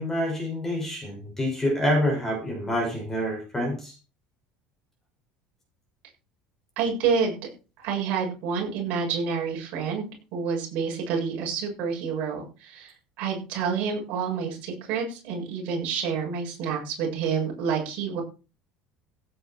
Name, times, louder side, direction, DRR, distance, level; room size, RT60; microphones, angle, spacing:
voice 1, 0.0-3.9, left 1 dB, 10° left, 1 dB, 6.3 m, -27 dB
voice 2, 6.8-7.4 7.8-10.1 10.3-18.2, right 6 dB, 50° right, 0 dB, 7.5 m, -28 dB
16.5 x 9.4 x 4.7 m, 0.34 s
cardioid pair, 165°, 3 cm